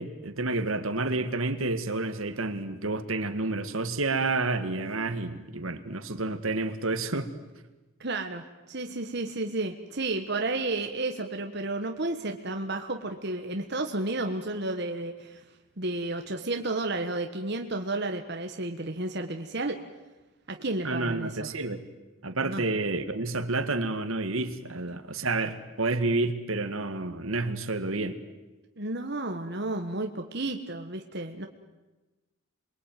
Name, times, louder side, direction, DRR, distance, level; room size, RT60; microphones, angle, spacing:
voice 1, 0.0-7.3 20.8-21.8 22.2-28.2, right 2 dB, 70° right, 10 dB, 2.0 m, -29 dB
voice 2, 8.0-15.4 15.8-19.8 20.5-21.5 22.4-22.6 28.8-31.5, right 2 dB, 50° right, 4 dB, 1.5 m, -32 dB
28.0 x 22.5 x 9.3 m, 1.1 s
head